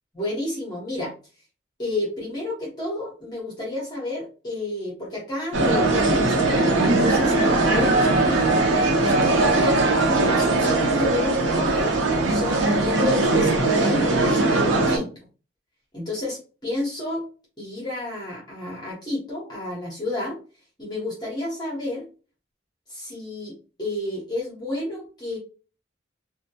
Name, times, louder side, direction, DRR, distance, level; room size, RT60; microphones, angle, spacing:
voice 1, 0.1-1.1 1.8-9.8 10.2-12.0 12.3-15.1 15.9-17.2 17.6-20.4 20.8-22.1 22.9-25.4, left 2 dB, 20° left, -5 dB, 0.8 m, -31 dB
sound 1, 5.5-15.0, right 2 dB, 75° right, 0.6 m, -20 dB
2.2 x 2.1 x 2.8 m, 0.36 s
head